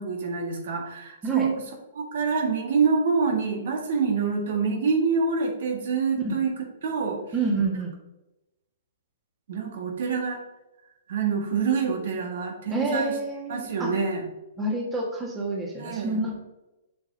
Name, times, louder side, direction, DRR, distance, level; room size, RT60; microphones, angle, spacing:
voice 1, 0.0-1.6 1.9-6.5 6.8-7.2 9.5-10.4 11.1-13.1 13.5-14.2 15.8-16.2, right 5 dB, 65° right, 1 dB, 1.6 m, -26 dB
voice 2, 7.3-7.9 12.7-14.0 14.6-16.3, right 2 dB, 15° right, -1 dB, 1.4 m, -28 dB
6.9 x 5.6 x 2.6 m, 0.96 s
hypercardioid pair, 135°, 0 cm